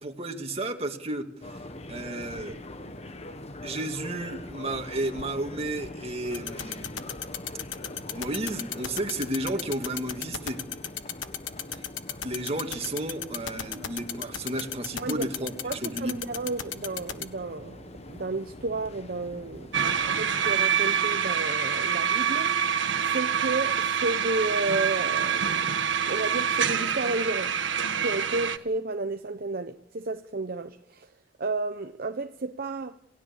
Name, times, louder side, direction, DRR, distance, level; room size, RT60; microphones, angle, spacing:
voice 1, 0.0-1.6 1.9-2.6 3.6-7.1 8.1-10.6 11.7-11.8 12.2-15.5 15.8-16.2, right 1 dB, 30° right, 2.3 m, -32 dB
sound 1, 1.4-20.5, left 1 dB, 35° left, 1.2 m, -43 dB
sound 2, 6.3-17.2, left 10 dB, 90° left, 1.3 m, -33 dB
voice 2, 15.0-15.3 15.6-19.7 20.0-22.5 23.1-25.6 26.0-27.5 28.0-31.1 31.4-33.0, right 3 dB, 50° right, 0.8 m, -32 dB
sound 3, 19.7-28.6, right 7 dB, 75° right, 1.4 m, -26 dB
28.0 x 16.5 x 7.3 m
head